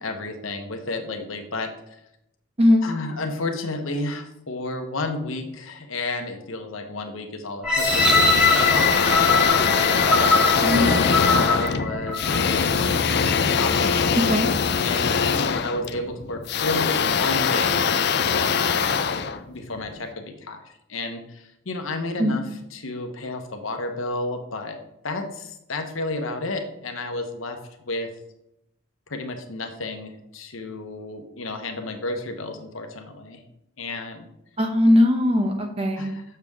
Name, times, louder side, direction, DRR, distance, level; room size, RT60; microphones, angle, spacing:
voice 1, 0.0-1.7 2.8-13.0 13.6-14.1 14.8-24.8 25.0-27.6 27.9-28.1 29.1-33.4 33.8-34.3 36.0-36.2, left 2 dB, 75° left, 5 dB, 1.0 m, -32 dB
sound 1, 7.6-12.6 13.2-13.3, left 3 dB, 5° right, 1.3 m, -22 dB
sound 2, 7.8-20.0, left 6 dB, 50° left, 0.5 m, -22 dB
voice 2, 14.2-14.5 22.2-22.4 34.6-36.1, left 1 dB, 30° right, 4 dB, 0.9 m, -19 dB
7.0 x 6.6 x 3.6 m, 0.82 s
head